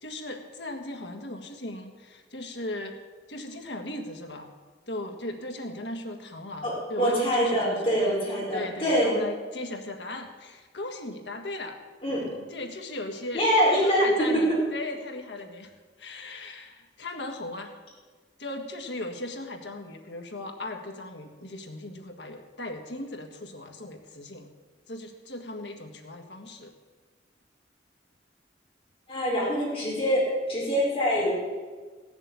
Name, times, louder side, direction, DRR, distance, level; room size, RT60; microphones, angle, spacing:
voice 1, 0.0-3.0 3.3-4.5 4.9-8.1 8.5-11.8 12.4-13.4 13.8-15.7 16.0-17.7 18.4-24.5 24.9-26.7, left 2 dB, 80° left, 3 dB, 1.8 m, -37 dB
voice 2, 6.6-9.1 12.0-12.3 13.3-14.1 29.1-31.3, equal, 30° left, -5 dB, 4.8 m, -24 dB
15.5 x 7.1 x 8.3 m, 1.4 s
head